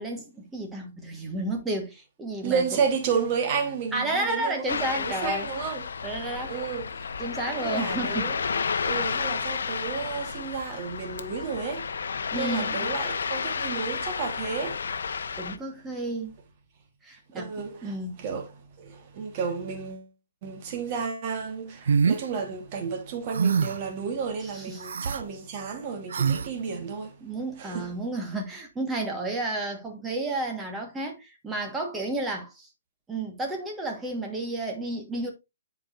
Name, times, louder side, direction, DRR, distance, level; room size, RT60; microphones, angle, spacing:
voice 1, 0.0-2.6 3.9-5.5 6.0-6.6 7.2-8.3 12.3-12.9 15.4-16.4 17.0-17.5 17.8-18.2 24.4-24.8 27.2-32.7 33.1-35.3, right 2 dB, 5° right, 1.3 m, -32 dB
voice 2, 2.4-5.9 6.5-7.1 7.6-8.4 8.8-15.4 17.3-20.1 20.4-27.2 27.6-27.9, right 6 dB, 25° right, 1.2 m, -32 dB
Ocean, 4.7-15.6, left 5 dB, 75° left, 0.7 m, -31 dB
sound 1, 21.9-22.2 23.3-23.9 24.8-25.2 26.1-26.5, right 6 dB, 70° right, 0.5 m, -24 dB
10.5 x 4.7 x 2.4 m
hypercardioid pair, 175°, 0 cm